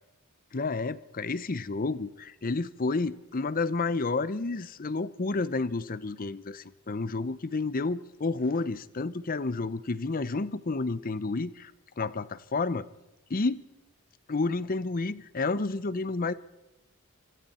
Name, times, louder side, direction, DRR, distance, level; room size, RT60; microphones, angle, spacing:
voice 1, 0.5-12.9 13.3-13.6 14.3-16.3, left 3 dB, 40° left, 17 dB, 0.7 m, -30 dB
26.0 x 25.5 x 4.3 m, 1.0 s
head